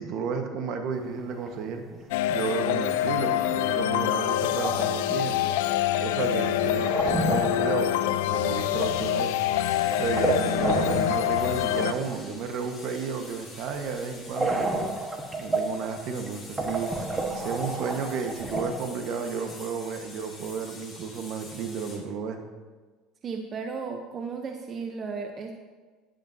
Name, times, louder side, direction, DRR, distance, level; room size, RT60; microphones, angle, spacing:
voice 1, 0.0-1.8 2.3-5.4 6.0-9.3 10.0-14.8 15.4-16.9 17.3-22.4, right 5 dB, 60° right, 5 dB, 1.4 m, -32 dB
sound 1, 1.1-1.6 1.9-2.2 2.7-2.8 3.0-3.1 4.1-5.0 6.0-8.0 8.3-8.8 9.5-11.5 11.8-12.2 14.4-15.8 16.3-16.4 16.6-18.7, right 2 dB, 20° right, 1.4 m, -30 dB
sound 2, 2.1-11.9, left 12 dB, 85° left, 0.4 m, -26 dB
sound 3, 8.8-22.0, left 3 dB, 20° left, 3.4 m, -47 dB
voice 2, 10.5-10.8 23.2-25.6, right 5 dB, 35° right, 4 dB, 0.9 m, -35 dB
12.0 x 10.5 x 2.8 m, 1.3 s
supercardioid pair, 105°, 0 cm